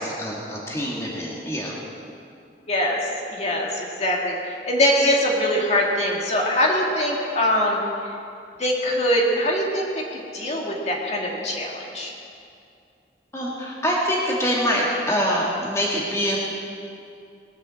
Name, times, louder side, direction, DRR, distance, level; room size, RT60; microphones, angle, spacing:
voice 1, 0.0-1.7 13.3-16.4, equal, 15° left, -4 dB, 2.0 m, -25 dB
voice 2, 2.7-3.0 3.3-7.8 8.6-12.1, left 1 dB, 40° left, -2 dB, 2.1 m, -23 dB
20.5 x 7.5 x 7.6 m, 2.5 s
head